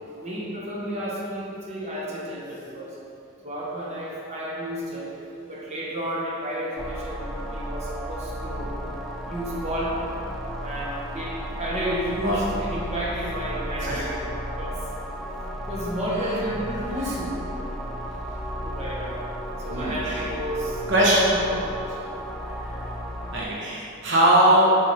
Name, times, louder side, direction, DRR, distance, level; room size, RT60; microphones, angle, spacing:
voice 1, 0.1-3.0 3.4-5.2 5.5-8.8 9.3-10.1 10.6-14.8 15.7-17.4 18.6-19.2 19.6-20.8 21.1-22.0, equal, 30° right, -6 dB, 1.2 m, -31 dB
sound 1, 6.8-23.4, equal, ahead, 0.5 m, -34 dB
voice 2, 19.7-20.2 20.9-21.2 22.6-22.7 23.3-24.7, right 1 dB, 60° right, -5 dB, 1.0 m, -20 dB
7.6 x 4.0 x 4.2 m, 2.6 s
head